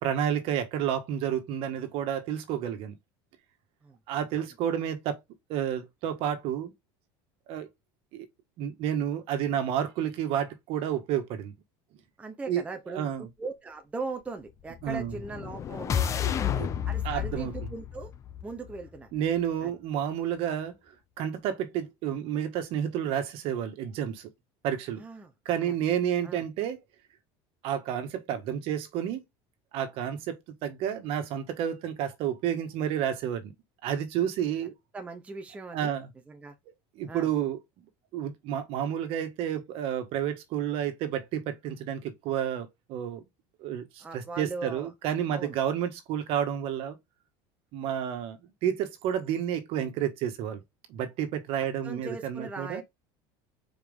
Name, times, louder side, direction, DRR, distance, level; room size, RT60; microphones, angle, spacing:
voice 1, 0.0-3.0 4.1-5.2 5.5-6.7 7.5-7.7 8.1-8.3 8.6-11.5 12.5-12.6 12.9-13.3 14.8-15.1 16.5-16.7 17.0-17.7 19.1-20.7 21.2-24.3 24.6-25.0 25.4-26.8 27.6-29.2 29.7-30.4 30.6-33.5 33.8-34.7 35.7-36.1 36.9-37.6 38.1-43.2 43.6-47.0 47.7-50.6 50.9-52.8, right 9 dB, 50° right, 1.6 m, -30 dB
voice 2, 12.2-16.5 16.8-18.1 18.4-19.1 19.6-19.7 25.0-25.3 25.6-25.7 26.2-26.4 34.9-35.9 36.3-36.5 37.1-37.3 44.0-44.9 45.3-45.6 51.8-52.8, right 3 dB, 10° right, 0.8 m, -39 dB
sound 1, 14.7-19.0, left 9 dB, 25° left, 0.6 m, -31 dB
5.9 x 4.7 x 3.6 m
cardioid pair, 160°, 12 cm